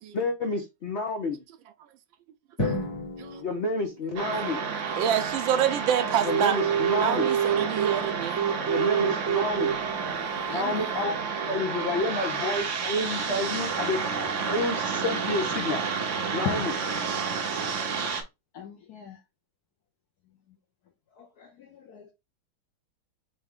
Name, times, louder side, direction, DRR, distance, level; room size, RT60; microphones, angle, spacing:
voice 1, 0.1-1.4 3.4-4.6 6.2-7.3 8.6-9.7 10.4-11.2 11.5-14.0 14.5-15.8 16.3-16.7, left 2 dB, 85° left, 0.6 m, -29 dB
Drum, 2.6-4.7, left 1 dB, 45° left, 1.6 m, -33 dB
sound 1, 4.2-18.2, right 6 dB, 60° right, 0.8 m, -28 dB
voice 2, 5.0-6.6 7.0-8.4 10.3-11.0, right 10 dB, 75° right, 1.3 m, -28 dB
voice 3, 10.2-10.9 13.2-13.4 14.2-14.4 16.4-16.6 18.5-19.2 21.1-22.1, left 8 dB, 70° left, 0.9 m, -39 dB
4.1 x 3.5 x 3.6 m
omnidirectional pair, 2.3 m